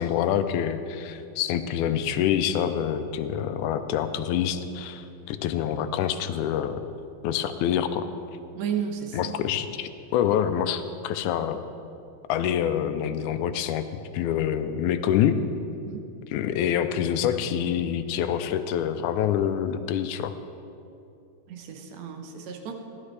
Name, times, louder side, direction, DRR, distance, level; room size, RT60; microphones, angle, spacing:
voice 1, 0.0-6.8 7.2-8.1 9.1-11.6 12.3-13.8 14.1-15.4 16.3-20.3, left 9 dB, 85° left, 10 dB, 2.0 m, -26 dB
voice 2, 8.6-9.3 15.7-16.0 21.5-22.7, right 8 dB, 70° right, 4 dB, 2.0 m, -33 dB
15.0 x 12.0 x 3.3 m, 2.6 s
omnidirectional pair, 3.5 m